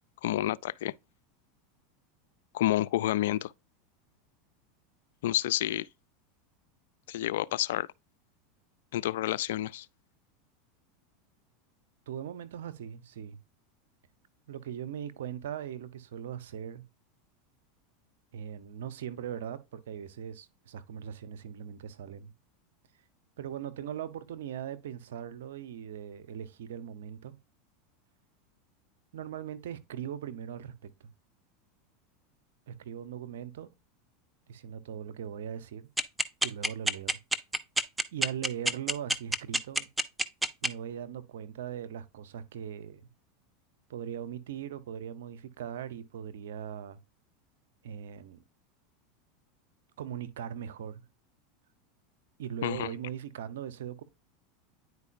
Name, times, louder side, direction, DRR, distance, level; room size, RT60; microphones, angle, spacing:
voice 1, 0.2-0.9 2.5-3.5 5.2-5.9 7.1-7.9 8.9-9.9 52.6-52.9, left 14 dB, 75° left, 0.3 m, -29 dB
voice 2, 12.1-13.4 14.5-16.8 18.3-22.3 23.4-27.4 29.1-30.7 31.0-31.1 32.7-33.7 34.5-35.9 36.4-37.2 38.1-39.9 40.6-43.0 43.9-47.0 47.8-48.4 50.0-51.0 52.4-54.0, right 9 dB, 80° right, 0.8 m, -40 dB
sound 1, 36.0-40.7, right 1 dB, 10° right, 0.6 m, -26 dB
9.6 x 4.7 x 2.6 m
hypercardioid pair, 100°, 0 cm